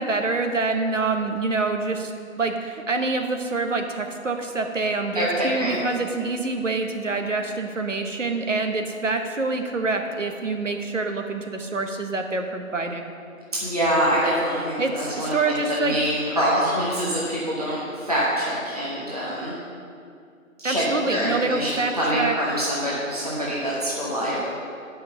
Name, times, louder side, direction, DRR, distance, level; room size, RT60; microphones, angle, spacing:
voice 1, 0.0-2.1 2.4-13.0 14.8-16.0 20.6-22.3, right 3 dB, 60° right, 5 dB, 1.0 m, -26 dB
voice 2, 5.1-5.8 13.5-19.5 20.6-20.8 21.1-24.5, equal, 30° right, -8 dB, 1.0 m, -25 dB
7.5 x 5.6 x 6.8 m, 2.4 s
figure-of-eight pair, 175°, 42 cm